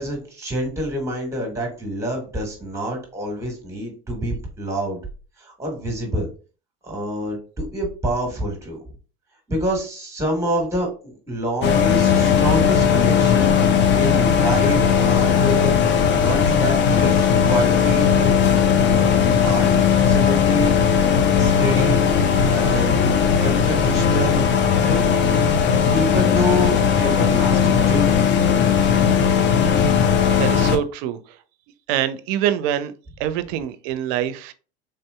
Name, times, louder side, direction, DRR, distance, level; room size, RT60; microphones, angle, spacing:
voice 1, 0.0-5.0 5.4-6.3 6.8-8.8 9.5-18.3 18.9-19.7 20.1-20.7 21.4-22.0 22.4-23.1 23.4-24.4 24.8-25.2 25.9-28.3, equal, 10° right, 1.3 m, -27 dB
sound 1, 11.6-30.8, left 7 dB, 35° left, 0.5 m, -17 dB
voice 2, 30.3-31.2 31.9-32.9 33.2-34.5, right 11 dB, 60° right, 0.5 m, -24 dB
3.5 x 2.7 x 2.2 m
hypercardioid pair, 80°, 32 cm